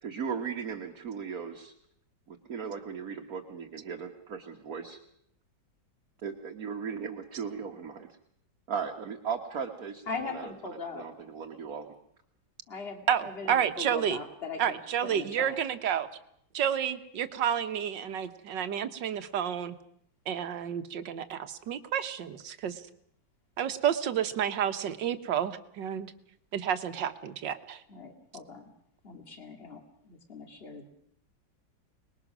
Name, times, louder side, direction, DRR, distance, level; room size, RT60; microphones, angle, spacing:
voice 1, 0.0-1.7 2.3-5.0 6.2-8.1 8.7-10.5 10.9-11.9, right 6 dB, 50° right, 3 dB, 1.8 m, -37 dB
voice 2, 10.1-11.1 12.7-15.6 27.9-28.7 29.0-30.9, left 4 dB, 30° left, 4 dB, 2.6 m, -40 dB
voice 3, 13.1-14.2 14.6-16.1 16.5-19.7 20.3-22.8 23.6-26.1 26.5-27.8, right 9 dB, 70° right, 10 dB, 1.7 m, -30 dB
25.5 x 20.5 x 6.1 m, 0.70 s
omnidirectional pair, 2.1 m